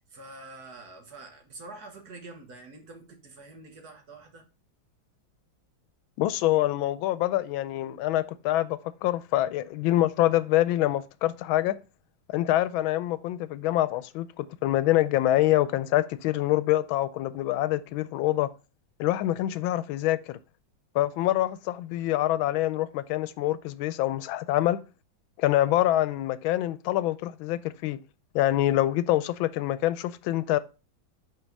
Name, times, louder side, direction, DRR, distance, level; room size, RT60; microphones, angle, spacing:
voice 1, 0.0-4.5, right 2 dB, 55° right, 1.7 m, -46 dB
voice 2, 6.2-11.8 12.3-18.5 19.0-20.4 20.9-24.8 25.4-28.0 28.3-30.6, left 14 dB, 90° left, 1.4 m, -25 dB
5.7 x 4.8 x 5.3 m
omnidirectional pair, 2.1 m